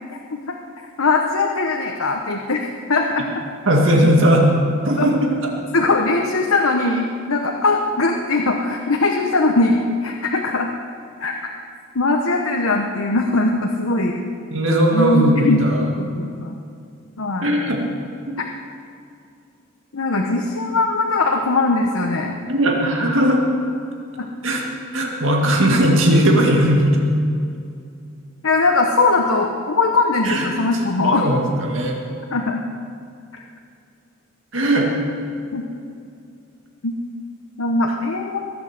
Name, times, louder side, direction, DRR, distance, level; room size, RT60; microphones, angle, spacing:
voice 1, 0.8-3.3 5.0-5.1 5.7-10.7 11.2-11.3 11.9-14.1 14.9-15.7 16.0-16.6 17.2-17.5 19.9-22.3 24.2-24.3 28.4-31.3 32.3-32.6 33.3-33.4 35.5-35.6 36.8-36.9 37.6-38.4, left 3 dB, 85° left, 1 dB, 1.1 m, -20 dB
voice 2, 3.7-4.5 4.8-5.5 14.5-15.3 15.6-15.9 17.4-17.9 18.3-18.4 22.5-23.4 24.4-24.6 24.9-27.0 30.2-30.6 31.0-32.0 34.5-34.9, right 1 dB, 70° right, 0 dB, 2.1 m, -18 dB
22.5 x 8.1 x 6.7 m, 2.4 s
head